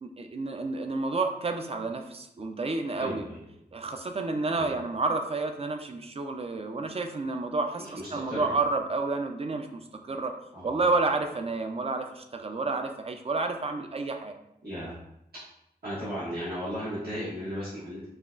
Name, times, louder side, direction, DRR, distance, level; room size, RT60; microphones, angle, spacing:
voice 1, 0.0-3.2 3.7-10.3 10.6-14.3, right 3 dB, 40° right, 5 dB, 0.4 m, -30 dB
voice 2, 3.0-3.4 4.6-4.7 7.8-8.5 10.5-10.8 14.6-14.9 15.8-18.1, equal, 75° right, -11 dB, 1.4 m, -35 dB
5.5 x 2.4 x 2.5 m, 0.80 s
wide cardioid pair, 85°, 16 cm